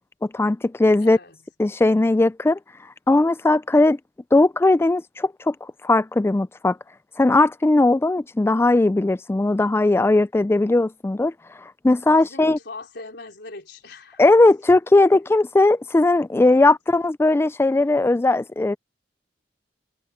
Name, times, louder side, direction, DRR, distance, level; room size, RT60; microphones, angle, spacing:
voice 1, 0.3-1.2 1.6-2.6 3.1-4.0 4.3-6.8 7.2-11.3 11.6-12.6 14.2-18.8, left 2 dB, 15° left, 0.3 m, -18 dB
voice 2, 1.0-1.5 12.1-14.4 16.4-16.7, left 3 dB, 65° left, 4.8 m, -41 dB
head